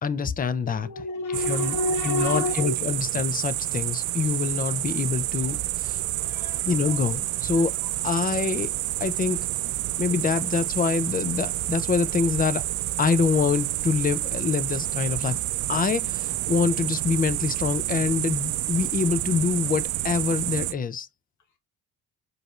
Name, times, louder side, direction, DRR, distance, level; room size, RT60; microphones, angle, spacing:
voice 1, 0.0-0.9 1.3-1.8 2.0-6.0 6.7-7.7 8.0-8.7 9.0-9.4 10.0-12.6 13.0-15.4 15.7-21.1, left 5 dB, 30° left, 0.5 m, -25 dB
voice 2, 0.6-2.7 6.2-7.0, left 2 dB, 80° left, 1.5 m, -30 dB
sound 1, 1.3-20.7, right 16 dB, 80° right, 0.5 m, -29 dB
5.0 x 3.2 x 2.4 m
cardioid pair, 90°, 30 cm